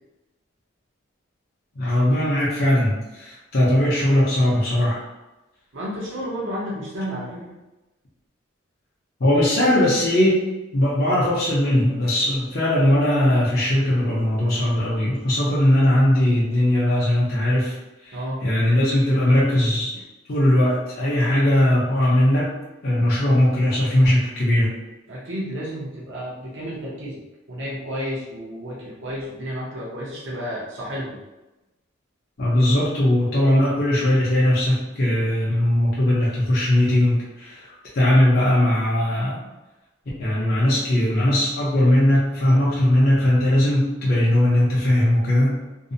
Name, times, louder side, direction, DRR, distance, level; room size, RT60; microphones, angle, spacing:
voice 1, 1.8-5.0 9.2-10.4 10.7-17.8 18.0-19.9 20.3-22.5 22.8-24.7 32.4-39.4 40.2-45.6, left 1 dB, 50° left, -7 dB, 0.6 m, -19 dB
voice 2, 5.7-7.5 18.1-18.4 25.1-27.2 27.5-31.2, equal, 65° right, -6 dB, 0.6 m, -31 dB
2.6 x 2.0 x 2.6 m, 1.0 s
head